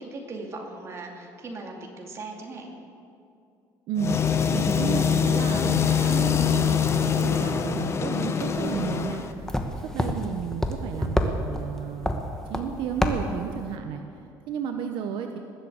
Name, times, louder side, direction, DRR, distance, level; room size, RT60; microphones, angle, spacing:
voice 1, 0.0-2.7, right 2 dB, 35° right, 1 dB, 2.4 m, -38 dB
voice 2, 3.9-12.2 12.5-15.4, right 7 dB, 75° right, 5 dB, 1.0 m, -33 dB
sound 1, 4.0-9.3, left 7 dB, 30° left, 0.9 m, -24 dB
sound 2, 8.6-13.8, left 1 dB, 5° left, 1.1 m, -30 dB
20.0 x 8.0 x 8.0 m, 2.5 s
cardioid pair, 140°, 8 cm